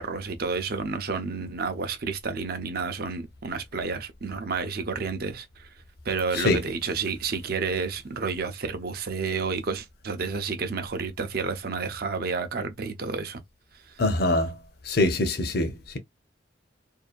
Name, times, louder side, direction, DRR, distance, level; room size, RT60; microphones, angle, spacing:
voice 1, 0.0-5.7 6.1-13.4, right 4 dB, 55° right, 0.6 m, -30 dB
voice 2, 14.0-14.6 14.9-16.0, left 2 dB, 60° left, 0.7 m, -24 dB
2.7 x 2.2 x 2.4 m
head